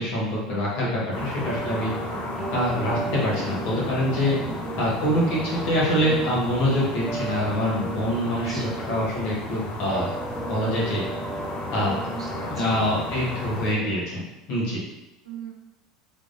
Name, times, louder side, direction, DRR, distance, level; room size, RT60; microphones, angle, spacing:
voice 1, 0.0-1.9 2.5-4.4 4.8-10.1 10.5-11.0 11.7-12.0 12.5-14.2 14.5-14.8, equal, 55° left, -5 dB, 1.4 m, -25 dB
sound 1, 1.1-13.7, left 2 dB, 40° left, 0.8 m, -34 dB
voice 2, 1.1-1.8 4.4-4.6 8.3-9.0 12.1-12.8 15.2-15.5, right 6 dB, 85° right, -2 dB, 0.8 m, -41 dB
sound 2, 1.4-14.0, right 2 dB, 10° right, 0.5 m, -36 dB
3.7 x 3.3 x 2.7 m, 0.94 s
hypercardioid pair, 75°, 3 cm